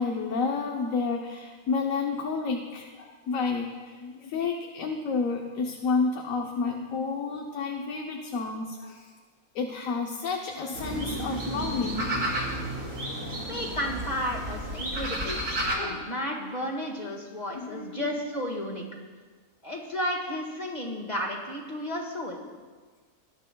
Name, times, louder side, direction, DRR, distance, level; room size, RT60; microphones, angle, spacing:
voice 1, 0.0-9.1 9.5-12.6 15.8-16.0 17.5-18.2, left 4 dB, 70° left, 2 dB, 1.2 m, -30 dB
sound 1, 10.7-15.8, right 1 dB, 65° right, 3.4 m, -32 dB
voice 2, 13.5-18.8 19.6-22.5, equal, 30° left, 0 dB, 1.8 m, -33 dB
19.5 x 11.0 x 2.3 m, 1.5 s
omnidirectional pair, 1.5 m